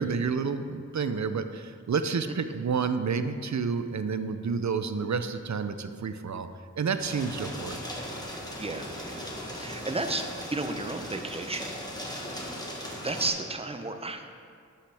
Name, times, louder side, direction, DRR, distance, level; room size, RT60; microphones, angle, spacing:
voice 1, 0.0-6.5 6.8-7.8, right 5 dB, 60° right, 10 dB, 0.5 m, -29 dB
sound 1, 7.0-13.3, equal, 10° left, 1.4 m, -38 dB
voice 2, 8.6-11.8 12.4-12.7 13.0-14.3, right 2 dB, 20° right, 6 dB, 0.6 m, -33 dB
11.5 x 5.7 x 3.4 m, 2.2 s
wide cardioid pair, 45°, 31 cm